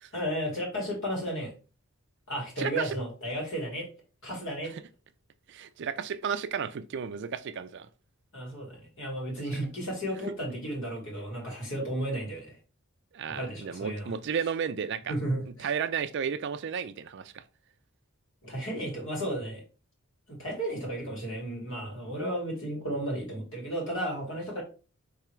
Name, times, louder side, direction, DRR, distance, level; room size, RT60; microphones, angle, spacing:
voice 1, 0.1-1.5 2.3-3.9 4.2-4.7 8.3-12.6 13.3-14.1 15.1-15.7 18.4-19.6 20.3-24.6, right 1 dB, 60° left, 2.1 m, -33 dB
voice 2, 2.6-3.0 5.5-7.9 13.1-15.1 15.6-17.4, right 7 dB, 55° right, 0.4 m, -33 dB
4.8 x 3.3 x 3.1 m
head